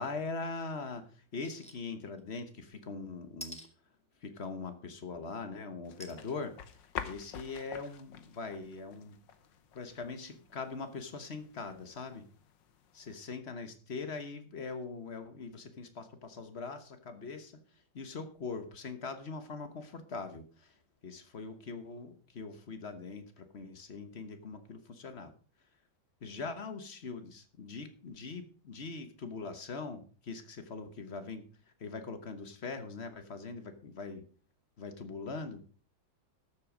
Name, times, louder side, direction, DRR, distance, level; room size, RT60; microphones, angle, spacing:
voice 1, 0.0-3.6 4.2-6.8 7.0-9.2 9.7-12.3 12.9-25.3 26.2-31.4 31.8-34.2 34.8-35.6, left 4 dB, 40° left, 9 dB, 1.2 m, -42 dB
sound 1, 1.4-1.8 2.2-2.3 3.4-3.7 6.0-6.2 6.8-6.9 7.2-7.3, left 1 dB, 5° left, 1.3 m, -46 dB
sound 2, 5.8-13.2, left 8 dB, 75° left, 1.7 m, -48 dB
13.0 x 7.6 x 5.0 m, 0.40 s
omnidirectional pair, 2.0 m